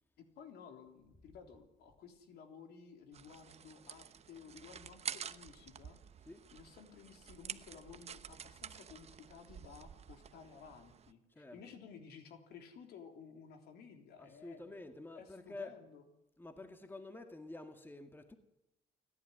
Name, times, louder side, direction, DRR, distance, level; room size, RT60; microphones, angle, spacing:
voice 1, 0.4-6.0 6.5-14.8 15.1-16.0, left 6 dB, 75° left, 3.6 m, -55 dB
sound 1, 3.1-11.1, right 8 dB, 40° right, 1.0 m, -49 dB
voice 2, 11.4-11.7 14.2-15.7 16.4-18.4, left 2 dB, 10° left, 1.9 m, -49 dB
29.0 x 11.0 x 9.9 m
cardioid pair, 110°, 17 cm